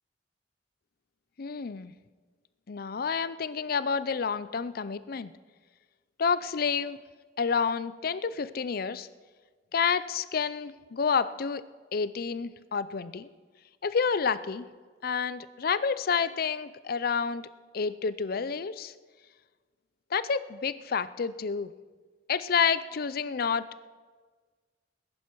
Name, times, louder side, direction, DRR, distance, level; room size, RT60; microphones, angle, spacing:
voice 1, 1.4-1.9 2.7-5.3 6.2-7.0 7.4-9.1 9.7-11.6 11.9-13.3 13.8-14.6 15.0-17.4 17.7-18.9 20.1-21.7 22.3-23.6, left 6 dB, 55° left, 15 dB, 0.5 m, -29 dB
20.0 x 11.0 x 4.6 m, 1.5 s
head